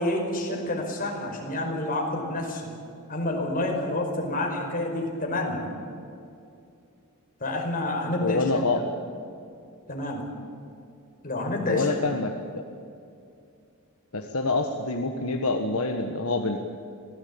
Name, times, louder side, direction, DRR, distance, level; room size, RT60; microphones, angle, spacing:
voice 1, 0.0-2.7 3.1-5.6 7.4-8.8 9.9-10.2 11.2-12.0, left 1 dB, 40° left, 1 dB, 5.2 m, -29 dB
voice 2, 8.2-8.8 11.7-12.6 14.1-16.6, left 3 dB, 70° left, 4 dB, 1.5 m, -26 dB
25.5 x 17.5 x 8.8 m, 2.5 s
head